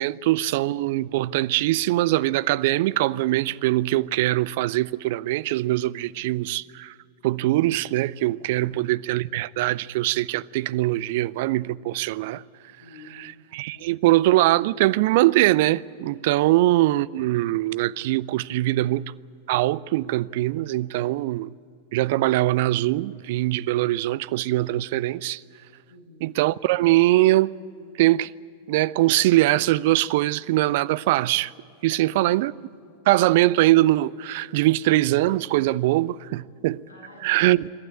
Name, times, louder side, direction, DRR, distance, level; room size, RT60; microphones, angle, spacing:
voice 1, 0.0-6.9 7.2-12.4 13.1-19.1 19.5-21.5 21.9-25.4 26.2-27.5 28.0-28.3 28.7-31.5 31.8-32.5 33.1-36.8 37.2-37.7, right 17 dB, 50° right, 0.4 m, -22 dB
voice 2, 12.8-13.3 13.7-14.1 16.4-16.6 21.0-21.2 25.9-26.3 31.9-32.4 36.9-37.7, left 2 dB, 85° right, 7.4 m, -49 dB
27.0 x 12.0 x 9.7 m
figure-of-eight pair, 90°, 0 cm